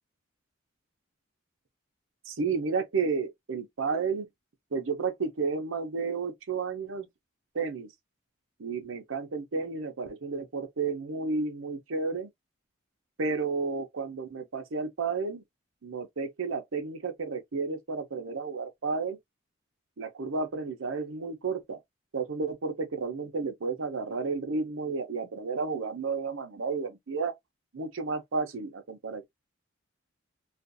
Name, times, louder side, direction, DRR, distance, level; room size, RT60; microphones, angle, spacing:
voice 1, 2.3-4.3 4.7-7.1 7.5-7.9 8.6-12.3 13.2-15.4 15.8-19.2 20.0-21.8 22.1-27.3 27.7-29.3, right 4 dB, 80° right, 0.6 m, -32 dB
2.5 x 2.3 x 2.5 m
head